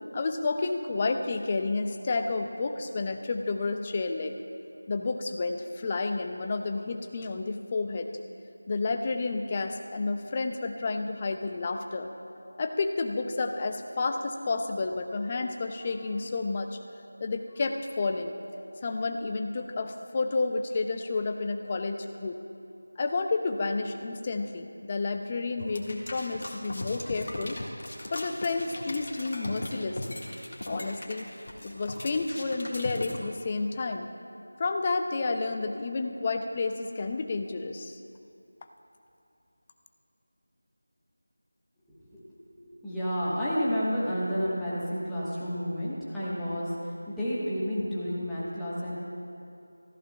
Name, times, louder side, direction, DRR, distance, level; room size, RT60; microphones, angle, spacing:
voice 1, 0.1-4.4 4.9-8.1 8.7-16.8 17.2-18.4 18.8-22.4 23.0-27.6 28.1-30.2 30.7-31.3 31.6-34.1 34.6-38.0, left 3 dB, 25° left, 5 dB, 0.5 m, -30 dB
sound 1, 25.6-33.2, left 1 dB, 50° left, 1.7 m, -38 dB
voice 2, 42.1-49.0, equal, 5° left, -12 dB, 1.3 m, -31 dB
18.0 x 14.0 x 2.3 m, 2.7 s
figure-of-eight pair, 170°, 0 cm